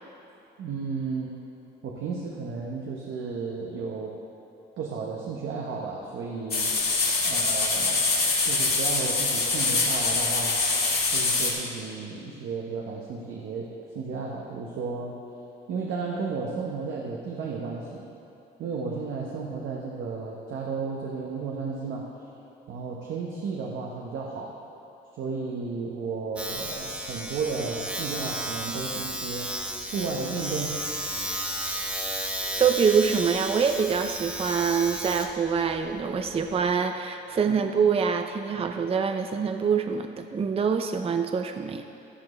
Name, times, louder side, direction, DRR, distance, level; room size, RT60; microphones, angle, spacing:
voice 1, 0.6-1.4 1.8-4.2 4.8-6.8 7.2-8.1 8.4-10.6 11.1-13.7 13.9-15.2 15.7-18.1 18.6-22.1 22.7-24.6 25.2-29.6 29.9-30.8 37.5-37.6, right 4 dB, 80° right, -2 dB, 1.1 m, -33 dB
sound 1, 6.5-11.5, left 3 dB, 50° left, 2.7 m, -24 dB
Domestic sounds home sounds, 26.4-36.7, right 1 dB, 5° right, 1.0 m, -33 dB
voice 2, 32.6-41.8, right 6 dB, 30° right, 7 dB, 0.5 m, -25 dB
12.0 x 11.5 x 3.2 m, 2.9 s
cardioid pair, 90°, 20 cm